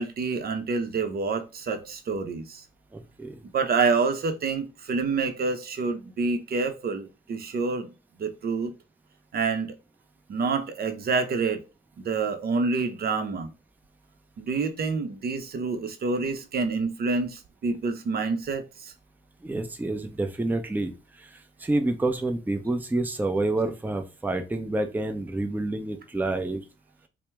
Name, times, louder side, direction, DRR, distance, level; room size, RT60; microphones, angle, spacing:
voice 1, 0.0-2.6 3.5-7.9 8.2-8.7 9.3-9.7 10.3-11.6 12.0-13.5 14.4-18.9, right 4 dB, 50° right, 0.7 m, -27 dB
voice 2, 2.9-3.4 19.4-20.9 21.2-26.6, right 2 dB, 10° right, 0.6 m, -28 dB
4.4 x 2.0 x 3.3 m
cardioid pair, 90°, 20 cm